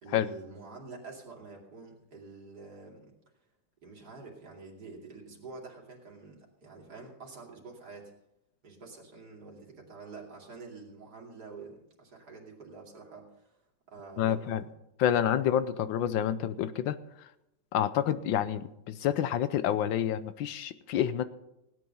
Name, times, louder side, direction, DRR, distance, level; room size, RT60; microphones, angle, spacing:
voice 1, 0.0-3.1 3.8-8.1 8.6-13.5 13.9-14.7, right 4 dB, 55° right, -1 dB, 3.2 m, -47 dB
voice 2, 14.2-14.6 15.0-17.0 17.7-21.2, left 10 dB, 80° left, 14 dB, 1.4 m, -28 dB
17.0 x 9.4 x 5.6 m, 0.86 s
omnidirectional pair, 2.1 m